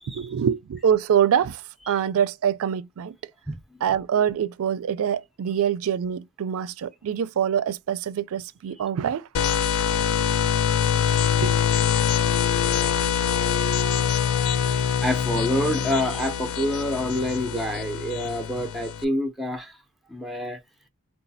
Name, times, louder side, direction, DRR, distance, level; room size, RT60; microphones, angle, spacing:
voice 1, 0.1-1.6 1.9-3.1 3.8-9.2 11.4-11.6, right 8 dB, 65° right, 0.4 m, -24 dB
sound 1, 9.3-19.0, left 8 dB, 65° left, 0.4 m, -24 dB
voice 2, 10.9-11.3 14.4-19.8 20.1-20.6, left 1 dB, ahead, 0.4 m, -28 dB
3.9 x 2.3 x 2.6 m
head